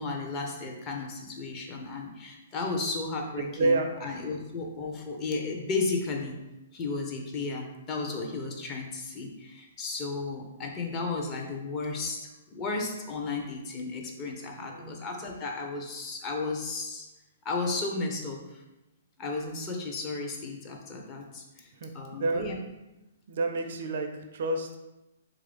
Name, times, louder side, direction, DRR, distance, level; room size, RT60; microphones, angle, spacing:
voice 1, 0.0-6.4 6.7-17.1 17.4-18.6 19.2-21.7 21.9-22.6, left 3 dB, 30° left, 1 dB, 0.6 m, -34 dB
voice 2, 3.3-4.3 14.6-15.0 21.8-22.5 23.3-24.8, right 2 dB, 60° right, 5 dB, 0.4 m, -30 dB
3.0 x 2.4 x 3.3 m, 0.99 s
hypercardioid pair, 130°, 0 cm